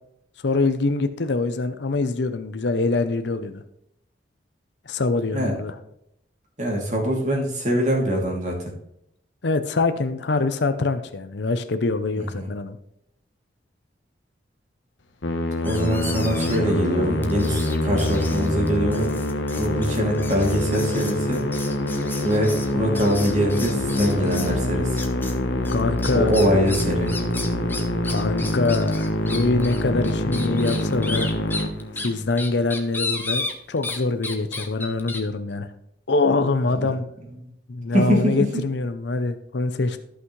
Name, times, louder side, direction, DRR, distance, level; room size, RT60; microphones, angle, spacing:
voice 1, 0.4-3.6 4.9-5.8 9.4-12.8 25.7-26.4 28.1-31.3 32.0-35.7 36.1-37.1 37.7-40.0, left 3 dB, 70° left, 9 dB, 0.6 m, -24 dB
voice 2, 6.6-8.6 12.2-12.5 15.6-19.1 19.5-21.4 22.2-25.0 26.1-27.1 36.8-36.9 37.9-38.6, equal, 40° right, -1 dB, 2.6 m, -23 dB
Musical instrument, 15.2-32.4, left 1 dB, 85° left, 1.1 m, -25 dB
sound 1, 15.6-16.8 17.2-24.6 25.0-25.4 25.6-34.0 34.2-35.2, left 3 dB, 10° left, 0.9 m, -34 dB
13.5 x 5.8 x 3.2 m, 0.77 s
head